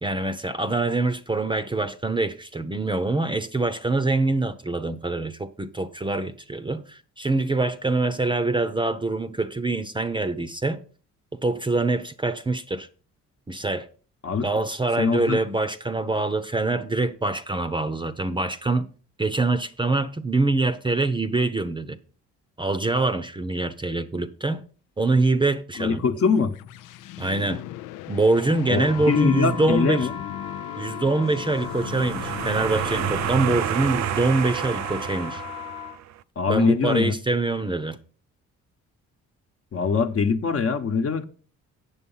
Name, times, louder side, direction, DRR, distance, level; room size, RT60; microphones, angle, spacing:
voice 1, 0.0-10.8 11.3-12.9 13.5-13.9 14.4-18.9 19.2-22.0 22.6-24.6 25.0-26.0 27.2-27.6 28.1-30.1 30.8-35.4 36.5-38.0, right 2 dB, 15° right, 0.7 m, -24 dB
voice 2, 15.0-15.4 25.8-26.5 28.7-30.1 36.4-37.2 39.7-41.2, left 5 dB, 50° left, 1.1 m, -23 dB
sound 1, 26.1-33.9, left 13 dB, 90° left, 0.5 m, -37 dB
sound 2, 28.8-36.0, left 7 dB, 15° left, 0.8 m, -38 dB
sound 3, 31.4-36.1, right 12 dB, 65° right, 0.5 m, -30 dB
8.4 x 6.9 x 5.5 m
cardioid pair, 90°, 30 cm